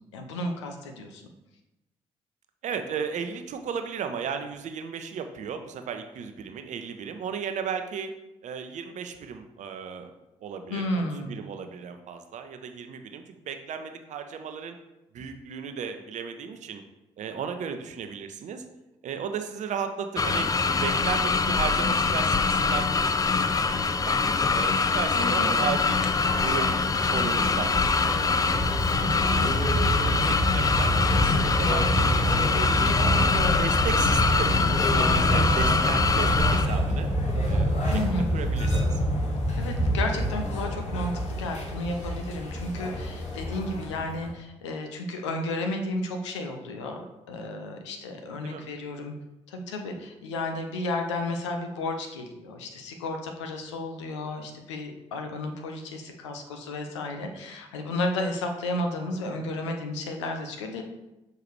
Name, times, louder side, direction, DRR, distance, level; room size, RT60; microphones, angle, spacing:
voice 1, 0.1-1.2 10.7-11.3 25.1-25.5 37.9-38.3 39.6-49.1 49.5-60.8, left 2 dB, 80° left, 4 dB, 0.7 m, -32 dB
voice 2, 2.6-8.1 8.4-10.1 10.4-14.8 15.1-16.8 17.2-18.6 19.0-20.5 20.8-24.2 24.5-26.0 26.4-26.7 27.1-27.7 28.0-32.9 33.3-37.1 37.4-38.0 38.3-39.0 48.4-48.7, right 7 dB, 55° right, 7 dB, 0.7 m, -35 dB
sound 1, 20.2-36.7, left 4 dB, 25° left, 0.5 m, -24 dB
sound 2, 25.2-44.3, equal, 50° left, 1.6 m, -27 dB
Hands, 25.7-30.7, left 2 dB, 5° right, 1.0 m, -40 dB
6.6 x 4.7 x 3.2 m, 0.95 s
figure-of-eight pair, 40°, 15 cm